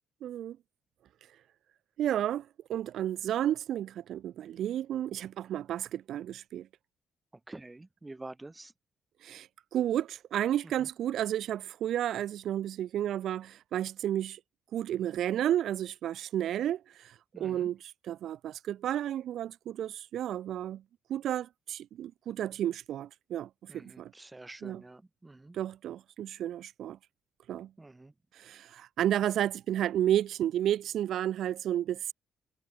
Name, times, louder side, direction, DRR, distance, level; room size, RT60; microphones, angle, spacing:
voice 1, 0.2-0.6 2.0-6.7 9.2-14.4 14.7-20.8 21.1-24.1 24.6-24.8 25.5-27.0 27.5-27.7 28.3-32.1, right 11 dB, 75° right, 0.6 m, -32 dB
voice 2, 7.5-8.7 10.8-10.9 17.3-17.7 23.7-25.6 27.8-28.1, right 2 dB, 15° right, 1.4 m, -47 dB
cardioid pair, 90°, 0 cm